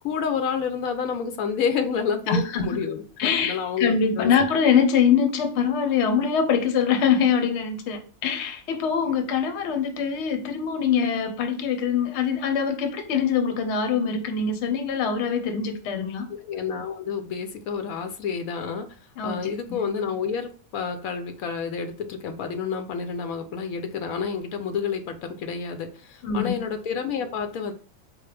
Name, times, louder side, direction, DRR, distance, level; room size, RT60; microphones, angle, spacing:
voice 1, 0.0-4.3 16.4-18.9 19.2-27.7, left 6 dB, 90° left, 7 dB, 1.1 m, -29 dB
voice 2, 2.3-2.7 3.2-16.3 19.2-19.8 26.2-26.6, left 6 dB, 60° left, 7 dB, 0.9 m, -23 dB
4.5 x 2.1 x 3.2 m, 0.43 s
omnidirectional pair, 1.4 m